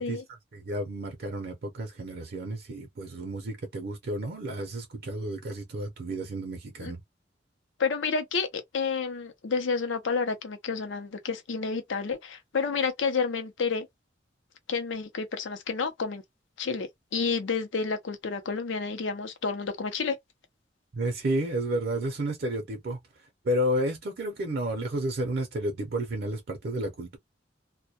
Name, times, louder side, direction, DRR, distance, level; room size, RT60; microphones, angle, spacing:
voice 1, 0.0-7.0 20.9-23.0 23.4-27.2, right 1 dB, 55° right, 0.5 m, -31 dB
voice 2, 7.8-13.9 14.7-16.2 16.6-20.2, left 5 dB, 90° left, 0.6 m, -30 dB
2.1 x 2.1 x 2.7 m
head